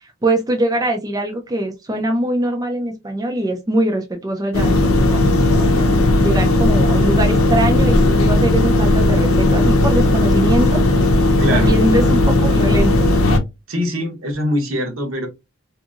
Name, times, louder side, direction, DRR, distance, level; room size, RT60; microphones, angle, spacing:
voice 1, 0.0-10.8 11.5-13.2, right 1 dB, 15° right, 0.4 m, -22 dB
sound 1, 4.5-13.4, left 2 dB, 80° left, 0.6 m, -15 dB
voice 2, 11.4-11.8 13.7-15.3, equal, 70° right, 1.1 m, -23 dB
2.8 x 2.6 x 2.4 m
head